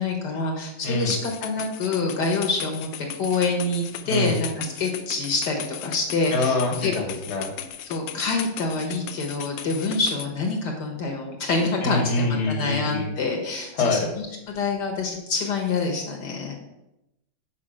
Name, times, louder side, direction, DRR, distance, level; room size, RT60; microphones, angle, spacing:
voice 1, 0.0-6.9 7.8-16.6, left 3 dB, 65° left, 1 dB, 1.5 m, -26 dB
sound 1, 1.0-10.3, left 9 dB, 85° left, 0.7 m, -37 dB
voice 2, 4.0-4.4 6.3-7.5 11.8-13.1 13.7-14.1, left 2 dB, 40° left, 1 dB, 1.3 m, -25 dB
6.3 x 5.2 x 4.9 m, 0.92 s
omnidirectional pair, 2.1 m